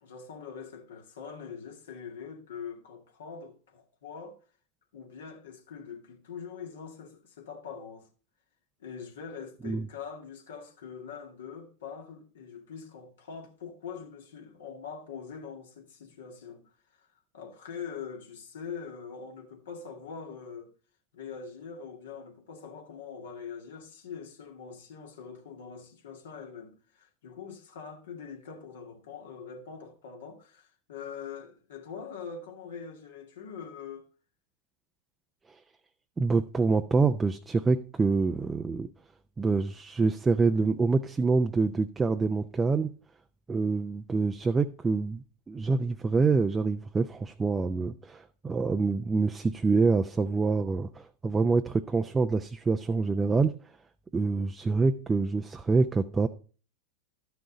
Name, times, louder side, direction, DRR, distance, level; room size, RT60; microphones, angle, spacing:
voice 1, 0.0-4.4 4.9-8.1 8.8-16.6 17.0-17.1 17.3-20.7 21.1-34.1, left 6 dB, 70° left, 2.2 m, -43 dB
voice 2, 36.2-38.9 39.4-42.9 43.5-53.5 54.1-56.3, right 4 dB, 15° right, 0.6 m, -26 dB
12.5 x 6.3 x 4.0 m
hypercardioid pair, 90°, 0 cm